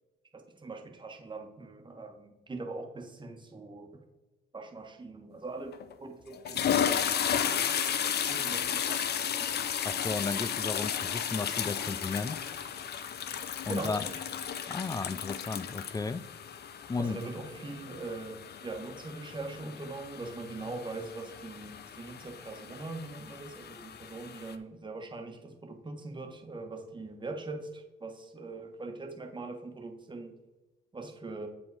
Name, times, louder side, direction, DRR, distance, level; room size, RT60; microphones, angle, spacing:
voice 1, 0.3-4.0 4.5-7.1 8.0-9.6 13.7-14.2 17.0-30.3 30.9-31.5, right 3 dB, 25° right, 1.3 m, -42 dB
sound 1, 5.7-5.9 6.3-24.5, left 8 dB, 55° left, 0.6 m, -34 dB
voice 2, 9.8-12.4 13.6-14.1 14.7-16.3 16.9-17.2, left 4 dB, 20° left, 0.3 m, -34 dB
7.6 x 4.9 x 4.8 m
cardioid pair, 90°, 20 cm